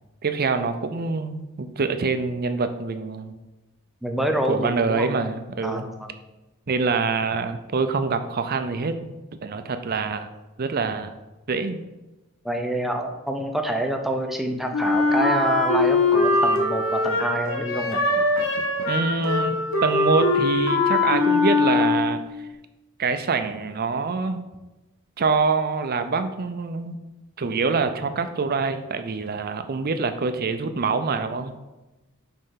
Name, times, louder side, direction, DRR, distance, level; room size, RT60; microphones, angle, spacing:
voice 1, 0.2-3.4 4.5-5.9 6.7-9.1 9.4-10.3 10.6-11.1 11.5-11.8 18.4-18.5 18.9-22.2 23.0-24.4 25.2-27.0 27.4-31.6, right 4 dB, 45° right, 9 dB, 0.5 m, -25 dB
voice 2, 4.0-5.1 5.6-6.2 12.4-18.2, equal, ahead, 4 dB, 0.6 m, -27 dB
Wind instrument woodwind instrument, 14.7-22.3, left 2 dB, 65° left, 1.4 m, -22 dB
5.4 x 4.8 x 5.7 m, 1.1 s
head